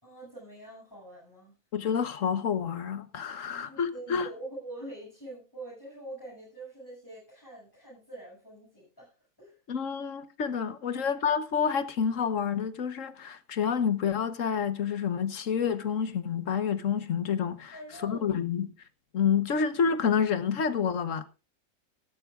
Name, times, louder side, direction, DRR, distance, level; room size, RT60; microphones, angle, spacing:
voice 1, 0.0-1.6 3.4-9.6 10.9-11.1 17.7-18.3, right 1 dB, 15° left, 7.4 m, -45 dB
voice 2, 1.7-4.3 9.7-17.7 18.0-18.7 19.1-21.2, left 7 dB, 65° left, 1.5 m, -28 dB
16.5 x 13.0 x 2.5 m
omnidirectional pair, 1.5 m